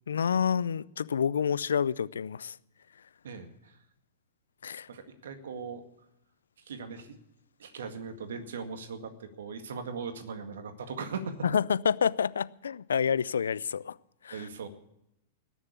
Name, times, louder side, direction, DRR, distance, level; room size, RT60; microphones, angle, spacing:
voice 1, 0.1-2.6 4.6-4.9 11.4-14.0 14.2-14.5, left 7 dB, 80° left, 0.5 m, -28 dB
voice 2, 3.2-3.8 4.9-5.8 6.7-7.2 7.6-11.4 14.3-14.7, right 5 dB, 70° right, 1.9 m, -39 dB
19.5 x 7.2 x 8.3 m
hypercardioid pair, 105°, 0 cm